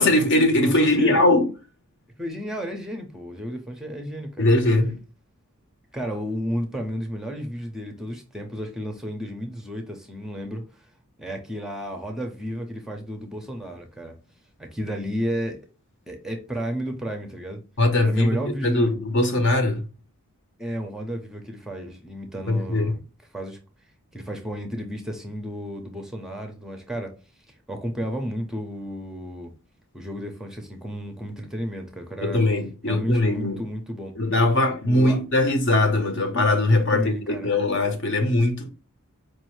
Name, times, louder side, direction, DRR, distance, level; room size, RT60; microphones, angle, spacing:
voice 1, 0.0-1.5 4.4-5.0 17.8-19.8 22.5-22.9 32.2-33.6 34.2-38.7, left 2 dB, 55° left, 0.9 m, -21 dB
voice 2, 0.6-1.2 2.2-4.5 5.9-10.9 11.2-14.2 14.6-15.6 16.1-17.6 18.0-18.9 20.6-23.0 23.3-23.6 24.1-27.1 27.7-29.5 29.9-32.4 32.9-34.2 34.8-35.2 36.9-37.5, equal, ahead, 0.6 m, -32 dB
4.7 x 2.6 x 3.1 m
head